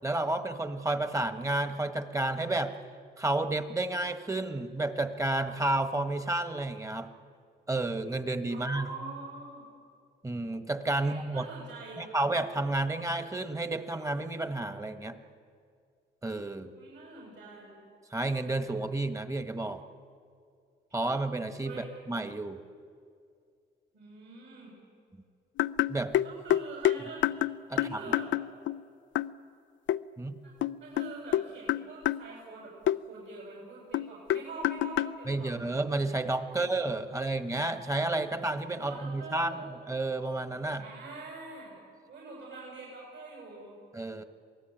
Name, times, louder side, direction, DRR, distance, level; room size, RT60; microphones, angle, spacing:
voice 1, 0.0-2.7 3.2-7.1 7.7-8.9 10.2-11.4 12.0-15.2 16.2-16.7 18.1-19.8 20.9-22.6 25.9-26.1 27.7-28.0 30.2-30.4 35.3-40.8 43.9-44.2, right 2 dB, 15° right, 9 dB, 1.4 m, -31 dB
voice 2, 8.5-9.6 10.9-12.1 16.7-17.8 21.6-21.9 23.9-24.7 26.2-27.2 27.7-28.3 30.4-30.5 30.8-32.7 33.1-35.7 36.5-36.7 37.1-37.2 38.8-39.7 40.8-41.7 42.1-43.7, right 3 dB, 65° right, -3 dB, 7.4 m, -44 dB
sound 1, 25.6-28.8 29.1-29.4 29.9-30.0 30.6-32.3 32.9-33.0 33.9-35.2, left 13 dB, 70° left, 0.5 m, -28 dB
27.0 x 18.5 x 9.1 m, 2.3 s
cardioid pair, 90°, 20 cm